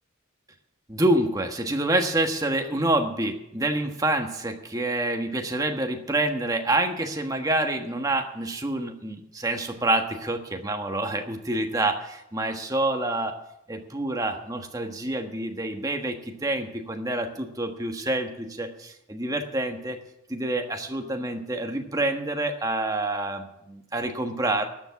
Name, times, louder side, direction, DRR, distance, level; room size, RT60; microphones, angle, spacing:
voice 1, 0.9-13.4 13.7-20.0 20.3-24.7, right 2 dB, 20° right, 4 dB, 1.3 m, -27 dB
13.0 x 7.2 x 9.4 m, 0.82 s
head